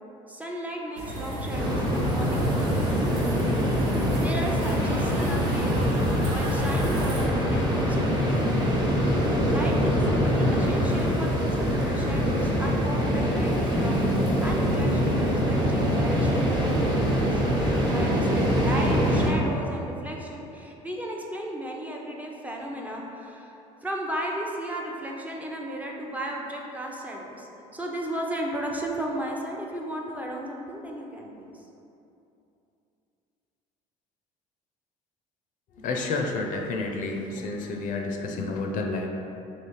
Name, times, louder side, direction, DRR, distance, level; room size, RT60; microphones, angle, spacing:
voice 1, 0.3-3.2 4.1-8.7 9.5-14.0 14.4-17.4 17.9-31.7, right 1 dB, 10° right, -2 dB, 0.6 m, -35 dB
sound 1, 1.0-7.3, right 1 dB, 85° right, 0.8 m, -34 dB
sound 2, 1.5-19.3, equal, 25° right, 1.1 m, -24 dB
voice 2, 35.8-39.1, left 3 dB, 60° left, 2 dB, 0.5 m, -30 dB
3.3 x 3.0 x 4.5 m, 2.9 s
supercardioid pair, 85°, 15 cm